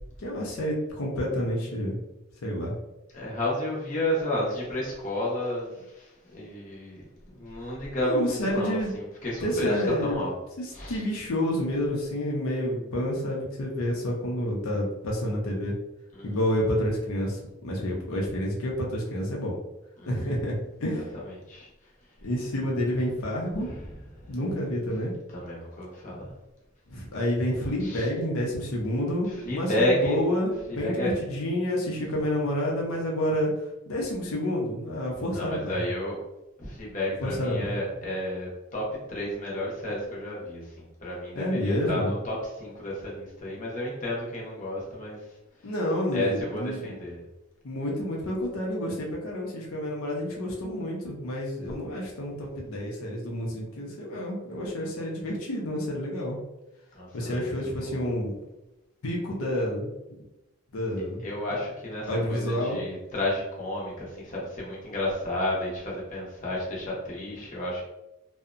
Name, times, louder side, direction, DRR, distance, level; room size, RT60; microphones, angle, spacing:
voice 1, 0.2-2.0 2.4-2.7 8.0-8.9 9.4-10.2 10.6-15.8 16.2-17.4 17.6-19.5 20.1-21.0 22.2-23.7 24.3-25.1 26.9-33.5 33.9-35.8 37.2-37.8 41.3-42.1 45.6-46.9 47.6-56.4 57.1-58.3 59.0-59.9 60.7-61.2 62.1-62.8, equal, 85° left, -2 dB, 0.5 m, -29 dB
voice 2, 3.1-7.0 7.3-10.3 10.7-11.0 16.1-16.4 20.0-20.3 20.9-21.7 23.6-23.8 24.1-24.3 25.3-26.3 27.8-28.1 29.3-30.2 30.7-31.1 35.4-36.2 36.6-45.2 46.1-47.2 56.9-57.5 57.8-58.0 61.2-67.9, left 1 dB, 35° left, -5 dB, 0.7 m, -31 dB
2.6 x 2.0 x 2.4 m, 0.94 s
head